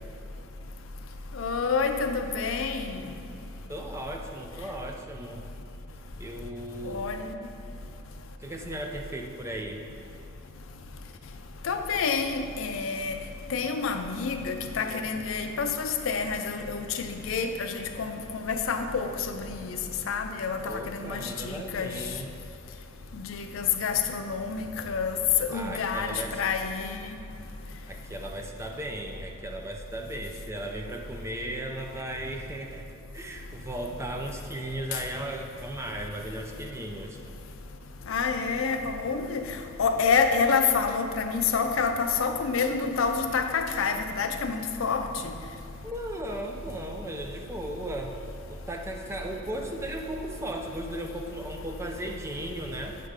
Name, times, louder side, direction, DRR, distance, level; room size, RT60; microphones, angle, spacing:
voice 1, 1.4-3.0 6.9-7.3 11.6-13.1 13.5-19.8 20.1-22.0 23.1-27.0 38.1-39.4 39.8-45.3, left 5 dB, 75° left, 6 dB, 0.5 m, -28 dB
voice 2, 3.7-5.5 6.2-7.1 8.4-9.8 20.6-22.4 25.5-26.4 27.9-32.9 33.1-37.2 45.8-48.2 48.5-53.0, right 1 dB, 15° right, 2 dB, 0.4 m, -36 dB
8.2 x 3.3 x 5.0 m, 2.9 s
head